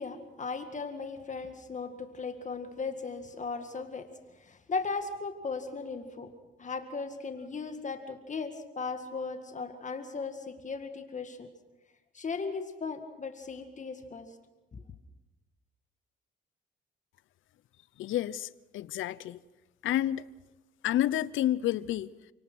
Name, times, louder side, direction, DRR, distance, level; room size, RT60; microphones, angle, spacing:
voice 1, 0.0-4.1 4.4-6.3 6.6-11.5 12.1-14.3 14.7-14.8, left 4 dB, 40° left, 1.9 m, -37 dB
voice 2, 18.0-19.4 19.8-20.2 20.8-22.1, left 13 dB, 80° left, 0.7 m, -29 dB
29.0 x 18.0 x 6.2 m
cardioid pair, 90°, 20 cm